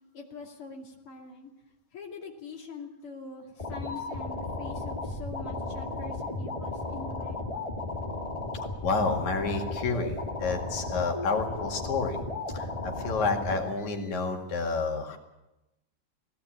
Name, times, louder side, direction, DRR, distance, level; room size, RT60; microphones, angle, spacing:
voice 1, 0.1-1.5 1.9-7.7, left 4 dB, 50° left, 1 dB, 3.4 m, -44 dB
sound 1, 3.6-13.6, left 2 dB, 10° left, 2.8 m, -35 dB
voice 2, 8.8-12.2 12.5-15.2, left 4 dB, 75° left, 3 dB, 3.6 m, -29 dB
19.5 x 17.0 x 8.8 m, 0.95 s
omnidirectional pair, 3.3 m